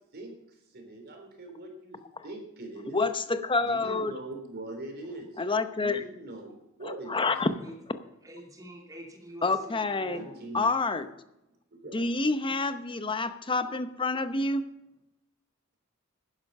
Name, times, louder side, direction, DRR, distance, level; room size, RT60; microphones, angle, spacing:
voice 1, 0.7-2.0 2.2-3.0 3.6-5.4 5.8-7.3 10.1-10.8 11.7-12.1, right 2 dB, 50° right, 4 dB, 3.3 m, -42 dB
voice 2, 2.9-4.1 5.4-6.0 6.8-7.5 9.4-10.3 10.5-11.1 11.9-14.7, left 3 dB, 25° left, 11 dB, 0.8 m, -28 dB
voice 3, 7.2-7.7 8.2-10.5, equal, 15° right, 1 dB, 2.8 m, -47 dB
11.5 x 10.5 x 5.4 m, 0.89 s
head